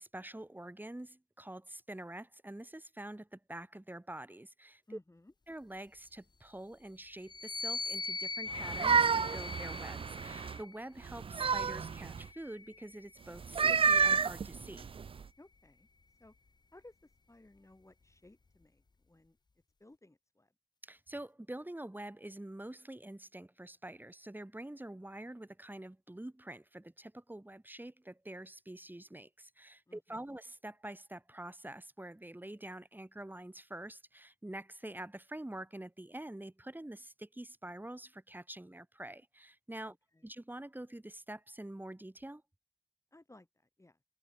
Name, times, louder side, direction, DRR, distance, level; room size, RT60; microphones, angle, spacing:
voice 1, 0.0-4.8 5.5-14.9 20.8-40.0 40.2-42.4, right 1 dB, 20° right, 2.8 m, -46 dB
voice 2, 4.9-5.3 15.4-15.9 16.2-16.3 16.7-19.4 19.8-20.5 29.9-30.4 39.8-40.3 43.1-44.0, left 2 dB, 30° left, 5.8 m, -59 dB
sound 1, 7.2-10.8 11.7-13.3, left 4 dB, 50° left, 0.7 m, -42 dB
sound 2, 8.5-10.6 11.1-12.3 13.4-15.2, right 6 dB, 70° right, 0.4 m, -30 dB
cardioid pair, 45°, 10 cm